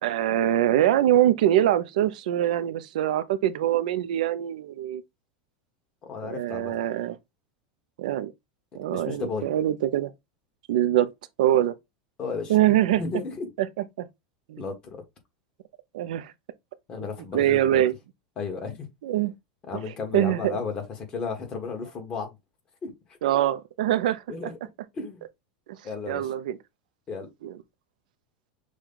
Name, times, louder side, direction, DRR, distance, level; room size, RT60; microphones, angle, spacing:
voice 1, 0.0-5.0 6.2-7.2 8.0-8.3 8.7-10.1 10.7-11.1 11.4-11.7 12.5-13.0 13.6-14.1 14.5-14.6 15.9-16.3 17.3-17.9 19.0-19.3 20.1-20.5 23.2-24.5 26.1-26.6 27.4-27.5, right 12 dB, 80° right, 0.5 m, -23 dB
voice 2, 6.1-6.7 8.9-9.5 12.2-12.5 13.0-13.5 14.6-15.0 16.9-17.8 18.4-18.9 19.7-20.8 21.1-22.3 22.8-22.9 24.3-24.6 24.9-25.2 25.8-26.3 27.1-27.3, left 4 dB, 20° left, 1.3 m, -33 dB
6.3 x 2.3 x 3.7 m
supercardioid pair, 170°, 4 cm